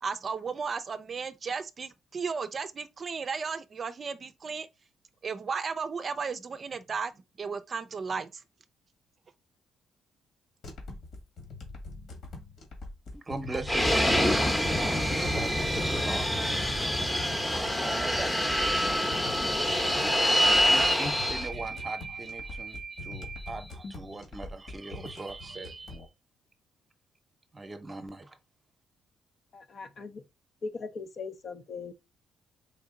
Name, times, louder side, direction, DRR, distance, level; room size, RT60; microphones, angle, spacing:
voice 1, 0.0-4.7 5.2-7.1 7.4-8.4, right 5 dB, 45° right, 0.5 m, -34 dB
sound 1, 10.6-26.1, left 3 dB, 65° left, 1.9 m, -43 dB
voice 2, 13.1-26.0 27.5-28.3, right 3 dB, 25° right, 0.8 m, -38 dB
Fixed-wing aircraft airplane, 13.7-21.5, equal, 10° left, 0.8 m, -26 dB
voice 3, 29.5-30.2 30.6-31.9, left 4 dB, 50° left, 0.7 m, -39 dB
4.4 x 2.8 x 3.7 m
cardioid pair, 90°, 0 cm